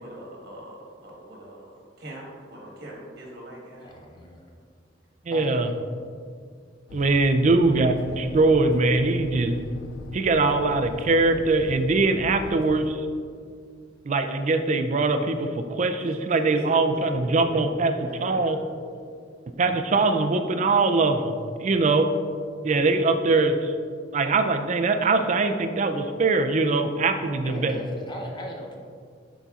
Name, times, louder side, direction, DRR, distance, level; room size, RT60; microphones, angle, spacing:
voice 1, 0.0-3.9 8.1-8.3 16.0-16.7 17.2-19.0, right 1 dB, 55° right, -2 dB, 1.3 m, -42 dB
voice 2, 3.8-4.5 5.3-5.8 27.4-28.8, equal, 25° left, 0 dB, 0.7 m, -38 dB
voice 3, 5.3-5.7 6.9-9.6 10.1-13.1 14.1-18.6 19.6-22.1 22.6-23.7 24.1-27.8, right 3 dB, 40° right, 8 dB, 0.4 m, -22 dB
sound 1, 6.9-12.9, left 4 dB, 85° left, 0.3 m, -41 dB
9.9 x 4.0 x 2.4 m, 2.1 s
head